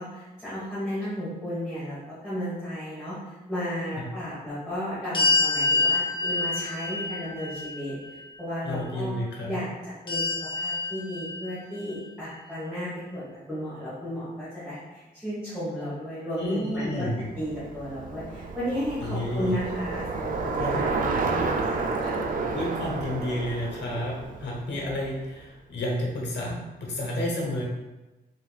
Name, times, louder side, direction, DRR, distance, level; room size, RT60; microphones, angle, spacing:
voice 1, 0.0-8.0 8.4-9.1 9.4-9.7 10.0-10.2 10.5-13.2 13.5-17.1 17.3-22.2, equal, 5° right, -12 dB, 1.2 m, -34 dB
sound 1, 5.1-8.3 10.1-11.8, left 3 dB, 30° left, 0.7 m, -27 dB
voice 2, 8.6-9.6 16.4-17.2 19.0-19.6 20.6-20.8 22.5-27.6, left 1 dB, 85° left, -2 dB, 1.1 m, -31 dB
Bicycle, 16.9-25.2, right 4 dB, 55° right, 0.4 m, -31 dB
4.2 x 3.6 x 2.3 m, 1.1 s
wide cardioid pair, 165°, 17 cm